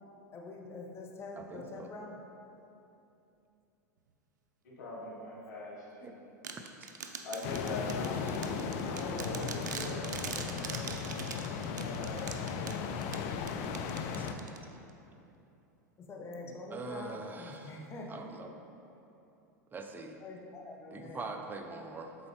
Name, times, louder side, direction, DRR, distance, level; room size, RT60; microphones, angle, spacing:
voice 1, 0.3-2.2 7.6-7.9 16.0-18.2 20.2-21.3, left 2 dB, 25° left, 0 dB, 0.9 m, -45 dB
voice 2, 1.3-1.9 6.0-6.2 6.6-6.7 8.3-8.4 14.2-14.4 16.7-17.8 18.1-18.5 19.7-20.2 20.9-22.2, right 3 dB, 20° right, 4 dB, 0.5 m, -43 dB
voice 3, 4.6-6.2 7.2-12.4 12.9-13.1, left 2 dB, 70° left, -5 dB, 1.5 m, -43 dB
sound 1, 6.4-14.9, right 6 dB, 75° right, 0.5 m, -43 dB
sound 2, 7.4-14.3, left 6 dB, 50° left, 0.4 m, -36 dB
7.2 x 4.0 x 3.3 m, 2.9 s
hypercardioid pair, 90°, 10 cm